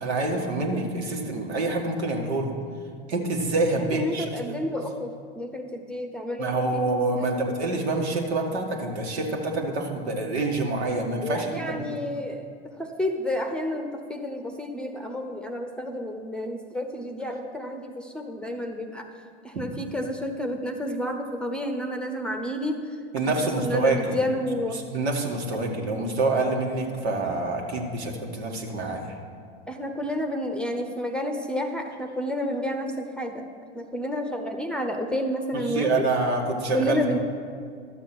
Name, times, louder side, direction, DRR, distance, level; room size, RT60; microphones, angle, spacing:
voice 1, 0.0-2.5 3.1-4.7 6.4-12.0 19.5-19.7 23.1-24.2 24.7-29.2 35.5-37.2, right 2 dB, 80° right, 1 dB, 1.9 m, -27 dB
voice 2, 3.8-6.8 7.1-7.3 11.2-12.5 12.8-19.1 19.4-22.8 23.6-24.8 29.7-33.5 33.7-36.1 36.7-37.2, equal, 5° left, 5 dB, 0.8 m, -30 dB
12.0 x 7.4 x 6.0 m, 2.1 s
hypercardioid pair, 100°, 32 cm